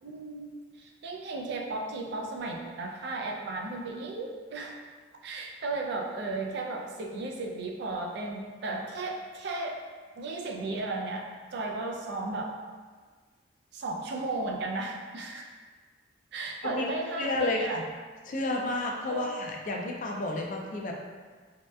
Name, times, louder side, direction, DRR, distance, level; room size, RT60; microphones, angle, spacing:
voice 1, 0.0-4.8 5.2-9.8 10.2-11.3 11.5-12.5 13.7-15.5 16.3-17.8 19.1-19.3, right 2 dB, 60° right, 1 dB, 0.4 m, -35 dB
voice 2, 17.2-17.8 18.3-20.9, left 2 dB, 45° left, 1 dB, 0.4 m, -31 dB
3.2 x 2.7 x 2.2 m, 1.5 s
head